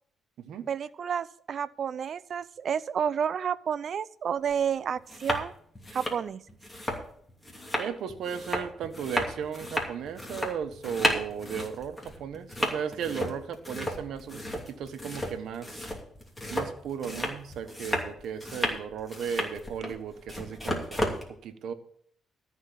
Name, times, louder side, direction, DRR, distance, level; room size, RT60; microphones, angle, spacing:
voice 1, 0.7-5.5 5.9-6.4, right 7 dB, 55° right, 17 dB, 0.5 m, -30 dB
sound 1, 4.4-4.5 5.0-5.4 5.7-21.2, left 1 dB, 15° left, 2.8 m, -33 dB
voice 2, 7.8-15.9 16.5-21.7, right 7 dB, 75° right, 9 dB, 1.2 m, -36 dB
13.5 x 4.7 x 8.4 m, 0.62 s
cardioid pair, 90°, 0 cm